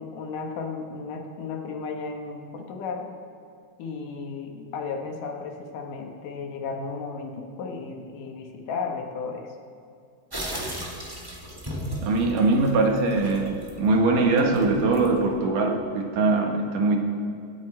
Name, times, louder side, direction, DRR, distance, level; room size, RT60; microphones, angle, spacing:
voice 1, 0.0-3.1 3.8-9.5, left 4 dB, 75° left, 2 dB, 2.8 m, -34 dB
sound 1, 10.3-15.4, equal, 15° right, 0.7 m, -36 dB
voice 2, 12.0-17.0, right 3 dB, 75° right, 2 dB, 2.9 m, -22 dB
25.0 x 8.9 x 4.3 m, 2.3 s
omnidirectional pair, 3.9 m